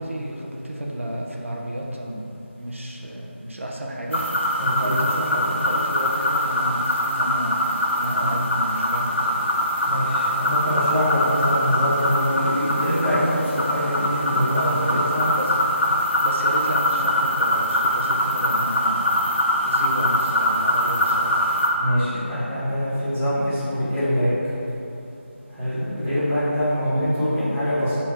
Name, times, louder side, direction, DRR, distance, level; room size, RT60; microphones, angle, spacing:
voice 1, 0.0-9.5 14.5-15.0 15.4-15.6 16.2-19.1 19.6-21.4 26.8-27.1, right 1 dB, 80° right, -1 dB, 1.1 m, -31 dB
sound 1, 4.1-21.7, equal, 65° left, 1.3 m, -23 dB
voice 2, 4.6-5.0 9.8-15.3 21.8-24.3 25.5-27.9, equal, 10° right, -16 dB, 1.2 m, -24 dB
6.9 x 4.3 x 4.5 m, 2.8 s
figure-of-eight pair, 180°, 7 cm